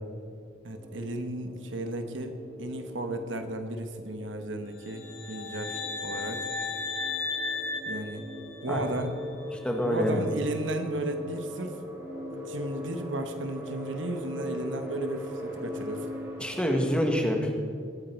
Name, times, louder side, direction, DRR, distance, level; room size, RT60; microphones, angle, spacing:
voice 1, 0.6-6.5 7.9-8.2 8.6-9.2 9.8-11.8 12.3-16.1, right 1 dB, 65° right, 7 dB, 1.1 m, -34 dB
sound 1, 0.7-17.2, left 1 dB, 15° right, 3.5 m, -41 dB
sound 2, 4.8-8.9, left 4 dB, 80° left, 1.8 m, -35 dB
voice 2, 9.5-10.3 16.4-17.5, equal, 5° left, 2 dB, 1.5 m, -26 dB
21.5 x 9.1 x 4.5 m, 2.2 s
head